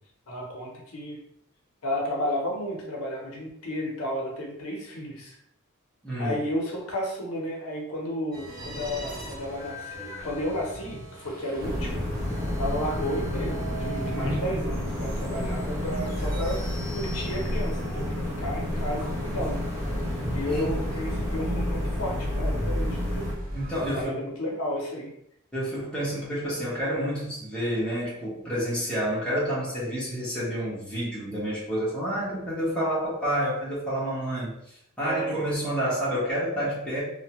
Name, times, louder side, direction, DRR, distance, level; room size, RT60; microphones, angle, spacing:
voice 1, 0.3-1.2 1.8-5.4 6.2-12.1 12.6-16.6 16.9-19.7 20.3-23.3 23.8-25.2 35.0-35.6, left 1 dB, 70° left, -1 dB, 0.7 m, -32 dB
voice 2, 6.0-6.4 20.5-20.8 23.5-24.2 25.5-34.6 35.0-37.0, equal, 5° left, -9 dB, 1.0 m, -29 dB
sound 1, 8.3-24.0, equal, 45° right, 0.9 m, -36 dB
sound 2, 11.6-23.3, left 1 dB, 30° right, 1.3 m, -30 dB
2.7 x 2.2 x 2.9 m, 0.74 s
head